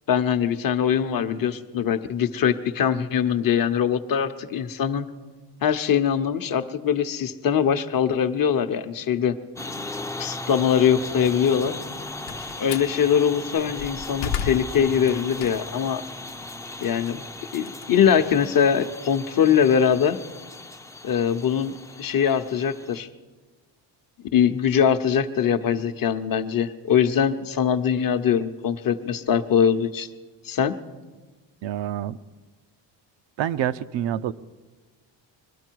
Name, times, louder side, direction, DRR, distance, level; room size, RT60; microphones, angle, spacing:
voice 1, 0.1-5.1 5.6-9.3 10.2-11.7 12.6-16.0 16.8-17.2 17.5-20.2 21.0-23.1 24.3-30.1 30.4-30.7, left 8 dB, 45° left, 8 dB, 0.8 m, -22 dB
sound 1, 9.6-23.0, left 2 dB, 5° left, 0.5 m, -37 dB
Slam, 11.8-12.9 13.5-15.9 16.3-18.7, left 7 dB, 85° left, 0.9 m, -34 dB
voice 2, 31.6-32.2 33.4-34.3, right 11 dB, 70° right, 13 dB, 0.6 m, -27 dB
22.0 x 12.5 x 4.6 m, 1.3 s
cardioid pair, 105°, 46 cm